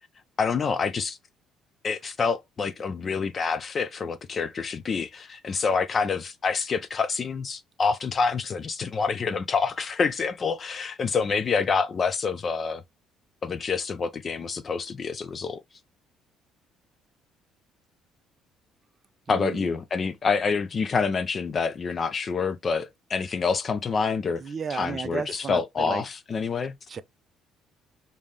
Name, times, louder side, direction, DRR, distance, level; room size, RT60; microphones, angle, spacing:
voice 1, 0.4-1.2 1.8-12.8 13.4-15.6 19.3-24.4 24.7-26.8, left 5 dB, 35° left, 0.4 m, -27 dB
voice 2, 19.3-19.7 24.4-26.0 26.9-27.0, right 5 dB, 35° right, 0.4 m, -33 dB
3.5 x 2.7 x 3.2 m
cardioid pair, 110°, 0 cm